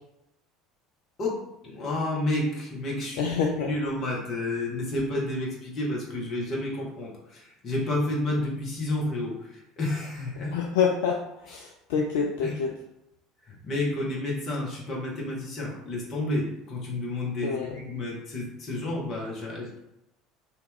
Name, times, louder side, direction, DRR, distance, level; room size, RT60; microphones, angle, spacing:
voice 1, 1.2-3.2 3.6-10.5 11.5-11.6 12.1-12.6 13.5-19.8, left 1 dB, 35° left, -3 dB, 1.1 m, -30 dB
voice 2, 3.2-3.7 10.5-12.7 17.4-17.7, left 6 dB, 60° left, 0 dB, 0.3 m, -27 dB
2.8 x 2.4 x 3.5 m, 0.85 s
figure-of-eight pair, 65°, 0 cm